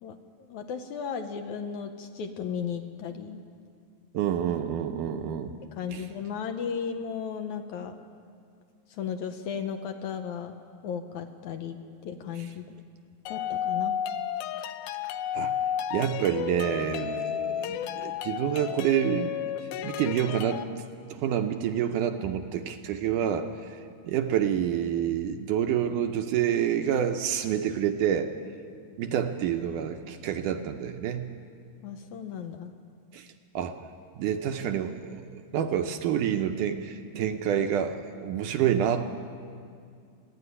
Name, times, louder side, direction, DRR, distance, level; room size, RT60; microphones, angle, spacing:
voice 1, 0.0-3.4 5.7-8.0 8.9-10.6 10.8-12.8 13.3-14.0 31.8-32.7, left 7 dB, 70° left, 6 dB, 2.0 m, -35 dB
voice 2, 4.1-5.5 5.9-6.0 15.3-15.6 15.9-19.4 19.8-20.7 21.1-23.8 24.0-28.3 29.0-31.4 33.1-33.3 33.5-33.8 34.2-39.0, right 9 dB, 75° right, 7 dB, 2.1 m, -28 dB
sound 1, 13.3-20.6, left 9 dB, 90° left, 2.6 m, -32 dB
29.5 x 10.5 x 9.8 m, 2.3 s
omnidirectional pair, 4.1 m